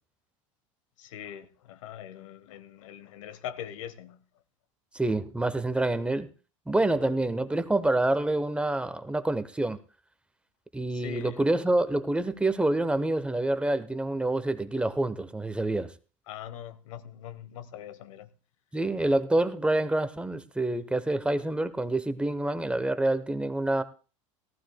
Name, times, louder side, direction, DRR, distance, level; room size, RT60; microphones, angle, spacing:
voice 1, 1.0-4.2 10.9-11.4 16.3-18.3, left 10 dB, 75° left, 1.0 m, -42 dB
voice 2, 4.9-6.3 6.7-9.8 10.7-15.9 18.7-23.8, right 2 dB, 5° right, 0.8 m, -27 dB
18.0 x 14.0 x 2.2 m
hypercardioid pair, 90°, 17 cm